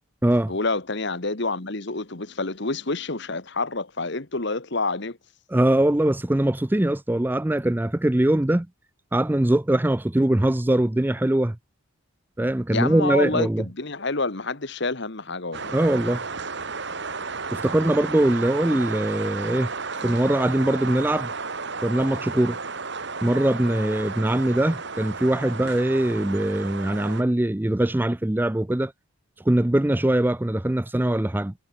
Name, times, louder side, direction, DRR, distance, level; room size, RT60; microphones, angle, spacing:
voice 1, 0.5-5.2 12.7-15.7, left 3 dB, 55° left, 1.6 m, -28 dB
voice 2, 5.5-8.7 9.1-11.6 12.4-13.6 15.7-16.2 17.5-19.7 20.0-21.3 21.8-22.6 23.2-28.9 29.5-31.5, right 1 dB, 10° right, 0.4 m, -22 dB
sound 1, 15.5-27.2, right 4 dB, 55° right, 1.9 m, -33 dB
head